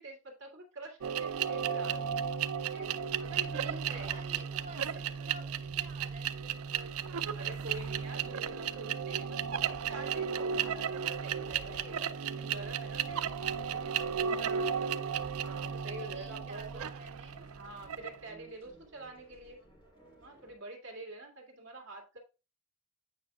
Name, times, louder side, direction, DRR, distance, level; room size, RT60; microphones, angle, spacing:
voice 1, 0.0-2.2 2.7-2.9 3.2-4.4 7.3-9.4 9.7-11.9 12.3-13.3 13.6-14.0 15.4-16.8 17.5-19.6 20.2-22.2, right 2 dB, 55° right, 2.2 m, -47 dB
sound 1, 1.0-18.2, right 7 dB, 85° right, 0.5 m, -34 dB
sound 2, 2.9-20.6, equal, 25° left, 3.7 m, -58 dB
voice 2, 3.6-7.0 14.2-15.0 15.8-17.5, right 3 dB, 30° right, 2.0 m, -51 dB
9.2 x 5.3 x 2.4 m
head